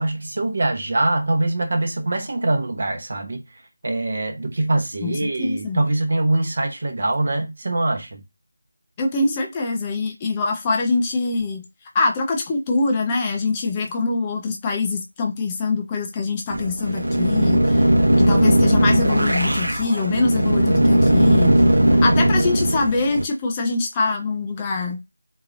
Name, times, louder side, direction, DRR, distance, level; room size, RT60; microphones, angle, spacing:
voice 1, 0.0-3.4 3.8-8.2, right 2 dB, 50° right, 0.9 m, -23 dB
voice 2, 5.0-5.8 9.0-11.6 11.9-17.9 18.2-21.6 21.9-25.0, left 3 dB, 15° left, 0.5 m, -24 dB
sound 1, 16.5-23.2, right 1 dB, 75° right, 1.0 m, -18 dB
3.8 x 2.9 x 2.5 m
figure-of-eight pair, 165°, 0 cm